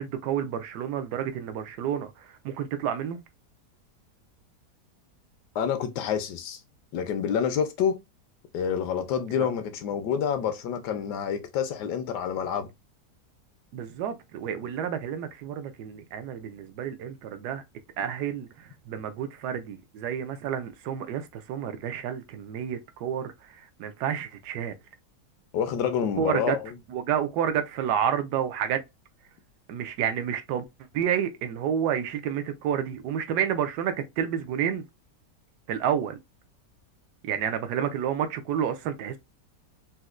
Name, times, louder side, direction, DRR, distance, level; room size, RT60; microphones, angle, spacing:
voice 1, 0.0-3.2 9.4-9.5 13.7-17.6 18.0-24.7 26.2-26.6 26.9-28.8 29.7-30.6 30.9-34.8 35.7-36.2 37.2-39.2, right 9 dB, 75° right, 1.1 m, -30 dB
voice 2, 5.5-6.6 6.9-8.0 8.5-12.7 25.5-26.7, left 8 dB, 75° left, 1.2 m, -28 dB
4.1 x 2.1 x 2.4 m
omnidirectional pair, 1.8 m